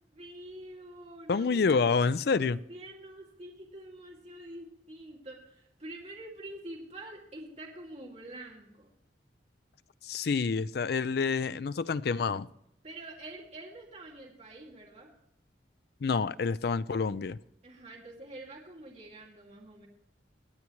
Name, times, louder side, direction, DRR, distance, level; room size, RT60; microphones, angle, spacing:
voice 1, 0.1-1.6 2.3-8.9 12.8-15.1 17.6-19.9, right 1 dB, 35° right, 2.3 m, -46 dB
voice 2, 1.3-2.6 10.0-12.5 16.0-17.4, left 5 dB, 60° left, 0.4 m, -28 dB
23.5 x 8.5 x 3.1 m
head